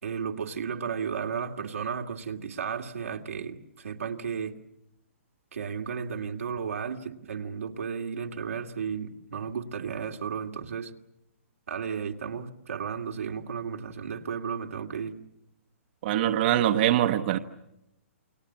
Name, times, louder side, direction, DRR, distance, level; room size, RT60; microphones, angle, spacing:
voice 1, 0.0-4.6 5.5-10.9 11.7-15.1, right 6 dB, 85° right, 2 dB, 2.4 m, -34 dB
voice 2, 16.0-17.4, right 12 dB, 45° right, 7 dB, 1.1 m, -23 dB
29.0 x 23.0 x 7.4 m, 0.84 s
hypercardioid pair, 145°, 7 cm